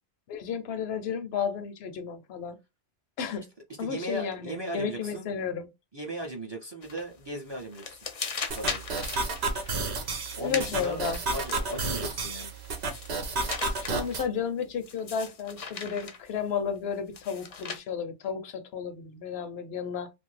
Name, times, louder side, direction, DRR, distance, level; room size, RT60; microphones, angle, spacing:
voice 1, 0.3-2.6 3.2-3.5 3.8-5.7 10.4-11.2 13.8-20.1, left 7 dB, 75° left, 0.8 m, -33 dB
voice 2, 3.8-5.3 5.9-8.0 8.6-8.8 10.4-11.0 11.3-12.5, right 1 dB, 30° right, 0.5 m, -37 dB
sound 1, 6.8-7.2 7.5-12.0 12.6-14.1 14.8-16.3 17.1-17.8, left 5 dB, 45° left, 0.5 m, -38 dB
sound 2, 8.5-14.3, right 3 dB, 80° right, 1.0 m, -31 dB
2.6 x 2.5 x 3.1 m
omnidirectional pair, 1.1 m